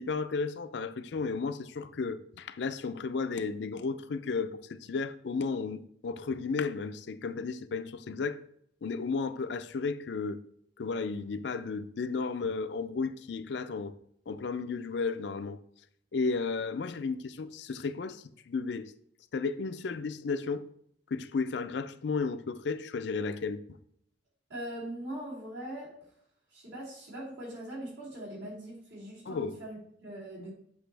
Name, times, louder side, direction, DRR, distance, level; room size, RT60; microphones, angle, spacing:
voice 1, 0.0-8.4 8.8-10.4 10.8-13.9 14.3-15.6 16.1-18.9 19.3-20.7 21.1-23.6 29.3-29.6, left 4 dB, 65° left, 0.4 m, -33 dB
voice 2, 24.5-25.9 26.5-30.5, right 1 dB, 75° right, 3.0 m, -41 dB
8.1 x 5.6 x 3.3 m
head